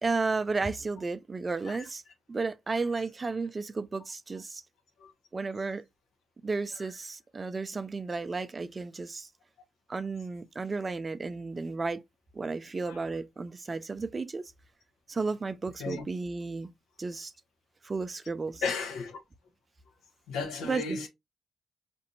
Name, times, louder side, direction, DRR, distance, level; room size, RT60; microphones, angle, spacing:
voice 1, 0.0-2.0 2.3-4.6 5.3-5.8 6.4-9.3 9.9-12.0 12.3-14.5 15.1-16.7 17.0-17.3 17.8-18.6 20.6-21.0, right 3 dB, 30° right, 0.4 m, -33 dB
voice 2, 18.6-19.2 20.3-21.1, left 4 dB, 85° left, 1.1 m, -34 dB
5.1 x 2.6 x 2.7 m
cardioid pair, 90°, 0 cm